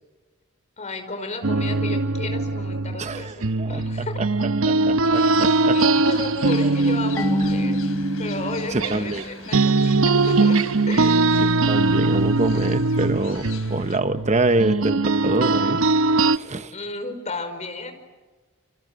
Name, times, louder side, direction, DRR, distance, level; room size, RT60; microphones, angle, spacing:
voice 1, 0.8-4.2 5.7-7.8 8.2-10.6 10.9-11.3 16.7-17.9, left 2 dB, 30° left, 7 dB, 5.1 m, -33 dB
sound 1, 1.4-9.2 9.5-16.4, right 3 dB, 65° right, 0.9 m, -21 dB
voice 2, 3.0-3.7 4.6-5.8 8.7-9.2 11.4-15.9 16.3-16.7, right 2 dB, 30° right, 10 dB, 1.0 m, -25 dB
sound 2, 5.1-14.0, left 7 dB, 75° left, 3.8 m, -43 dB
Marimba xylophone / Wood, 7.2-9.9, equal, 10° left, 1.6 m, -28 dB
29.0 x 27.5 x 7.6 m, 1.3 s
head